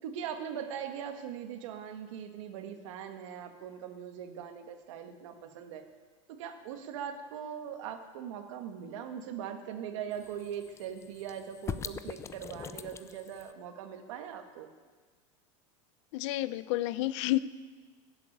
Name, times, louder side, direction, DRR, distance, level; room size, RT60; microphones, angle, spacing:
voice 1, 0.0-5.9 6.3-14.7, right 8 dB, 75° right, 6 dB, 1.7 m, -41 dB
sound 1, 10.1-13.5, left 7 dB, 15° left, 0.4 m, -43 dB
voice 2, 16.1-17.4, left 17 dB, 70° left, 17 dB, 0.7 m, -30 dB
15.0 x 8.3 x 8.7 m, 1.4 s
supercardioid pair, 140°, 16 cm